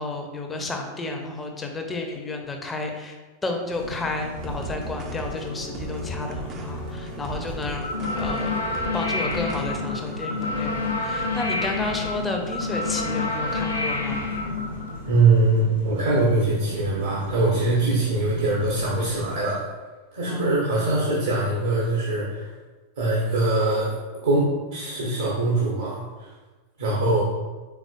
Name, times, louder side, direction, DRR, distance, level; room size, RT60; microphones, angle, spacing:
voice 1, 0.0-3.2 3.4-7.9 8.2-8.6 8.9-14.3 20.3-20.6, left 2 dB, 15° left, 3 dB, 0.6 m, -31 dB
sound 1, 3.7-19.4, left 1 dB, 85° right, 1.1 m, -38 dB
sound 2, 4.3-10.2, right 2 dB, 30° right, 0.5 m, -37 dB
sound 3, 7.8-15.0, left 3 dB, 80° left, 0.8 m, -28 dB
voice 2, 15.1-19.6 20.1-22.5 23.0-23.9 24.2-26.3 26.8-27.2, right 2 dB, 65° right, -5 dB, 1.1 m, -22 dB
4.7 x 3.8 x 2.5 m, 1.3 s
figure-of-eight pair, 90°, 0 cm